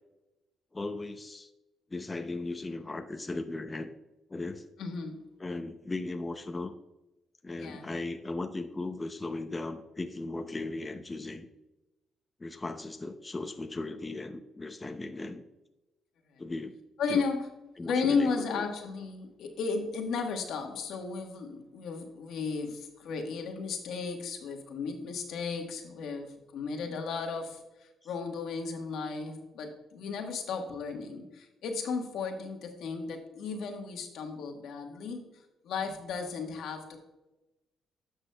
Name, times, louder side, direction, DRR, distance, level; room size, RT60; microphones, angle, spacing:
voice 1, 0.7-1.5 1.9-3.9 4.3-4.7 5.4-6.7 7.4-11.5 12.4-15.4 16.4-16.8 17.1-17.2 17.8-18.6 28.0-28.1, left 2 dB, 20° left, 7 dB, 0.5 m, -37 dB
voice 2, 4.8-5.2 7.6-7.9 16.3-16.4 17.0-17.5 17.8-35.2 35.6-37.0, left 5 dB, 75° left, 4 dB, 1.3 m, -34 dB
11.5 x 6.2 x 2.2 m, 0.99 s
cardioid pair, 90°, 0 cm